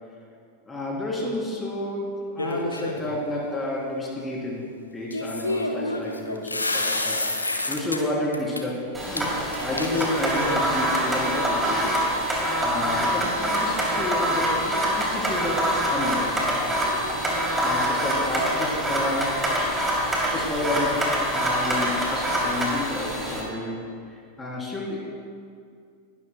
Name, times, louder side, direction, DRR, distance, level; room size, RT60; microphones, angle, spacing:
voice 1, 0.6-7.3 7.7-11.9 12.6-16.7 17.6-19.4 20.3-21.1 21.3-23.9 24.4-25.0, left 1 dB, 10° left, -3 dB, 3.3 m, -30 dB
sound 1, 2.4-3.1 5.1-8.0 8.3-8.6 9.2-9.3 9.5-10.7, left 2 dB, 80° left, 0.9 m, -28 dB
sound 2, 8.9-23.4, equal, 10° right, 3.0 m, -25 dB
19.5 x 12.0 x 2.2 m, 2.2 s
figure-of-eight pair, 90°, 0 cm